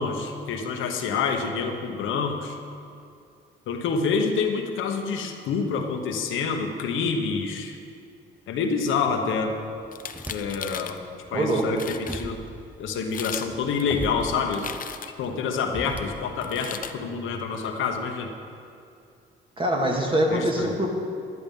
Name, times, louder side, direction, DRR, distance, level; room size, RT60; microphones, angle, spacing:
voice 1, 0.0-2.6 3.7-7.8 8.5-9.5 10.3-11.0 11.3-12.4 12.8-14.7 15.2-18.3 20.3-20.7, left 5 dB, 85° left, 4 dB, 1.2 m, -27 dB
sound 1, 9.7-10.8 11.2-16.5, right 1 dB, 5° right, 0.8 m, -40 dB
sound 2, 9.9-11.0 11.5-11.6 11.8-12.2 13.0-13.5 13.8-15.3 16.4-17.0, left 7 dB, 45° left, 0.6 m, -37 dB
voice 2, 11.3-11.6 19.6-20.9, right 1 dB, 25° right, 0 dB, 2.1 m, -23 dB
11.0 x 11.0 x 5.4 m, 2.4 s
cardioid pair, 90°, 20 cm